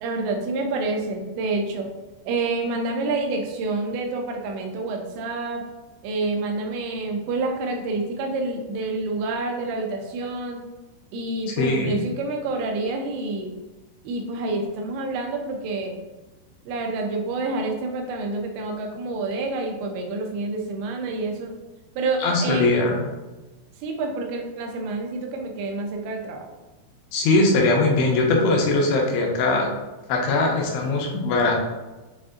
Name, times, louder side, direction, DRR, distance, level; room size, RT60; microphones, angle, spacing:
voice 1, 0.0-1.9 2.3-5.6 6.0-10.6 11.1-13.5 14.0-16.0 16.7-21.6 22.0-23.0 23.8-26.5, right 3 dB, 90° right, 2 dB, 2.9 m, -28 dB
voice 2, 11.5-12.0 22.2-23.0 27.1-29.7 30.1-31.6, left 2 dB, 80° left, 0 dB, 2.8 m, -21 dB
7.4 x 2.5 x 2.4 m, 1.2 s
omnidirectional pair, 5.0 m